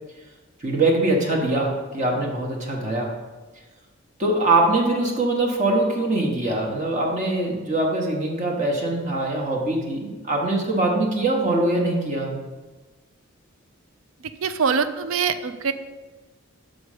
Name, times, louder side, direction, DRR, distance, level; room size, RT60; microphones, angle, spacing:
voice 1, 0.6-3.1 4.2-12.4, right 2 dB, 35° right, -1 dB, 0.9 m, -23 dB
voice 2, 14.4-15.7, right 6 dB, 70° right, 11 dB, 0.4 m, -23 dB
6.3 x 4.8 x 4.8 m, 1.2 s
head